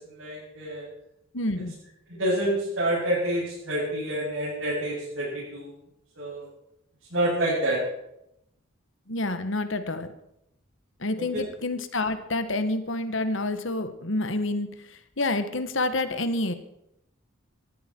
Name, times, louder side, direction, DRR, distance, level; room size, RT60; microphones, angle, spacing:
voice 1, 0.2-0.8 2.1-5.7 6.2-6.5 7.1-7.8 11.2-11.4, right 1 dB, 65° right, -7 dB, 7.6 m, -27 dB
voice 2, 1.3-1.8 9.1-10.1 11.0-16.5, left 2 dB, 65° left, 9 dB, 1.5 m, -28 dB
19.5 x 14.0 x 4.6 m, 0.79 s
head